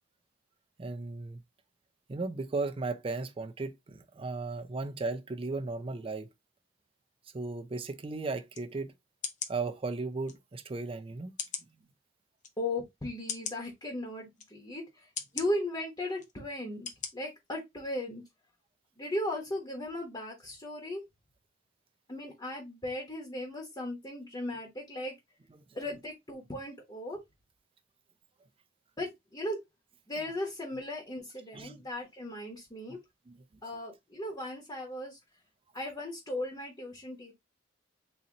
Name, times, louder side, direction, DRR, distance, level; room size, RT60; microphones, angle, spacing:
voice 1, 0.8-1.4 2.1-6.3 7.3-8.9 9.5-11.3 31.5-31.8 33.3-33.4, right 3 dB, 30° right, 0.4 m, -36 dB
sound 1, 8.5-8.7 9.2-9.5 10.3-10.4 11.4-11.7 12.4-12.5 13.3-13.6 14.4-14.5 15.2-15.5 16.2-16.3 16.9-17.1 17.5-17.6, left 7 dB, 40° left, 0.6 m, -37 dB
voice 2, 12.6-15.1 15.3-18.2 19.0-21.0 22.1-25.1 25.7-27.2 29.0-29.6 30.1-33.0 33.6-35.2 35.7-37.3, left 1 dB, 20° left, 1.1 m, -37 dB
3.9 x 2.8 x 2.9 m
head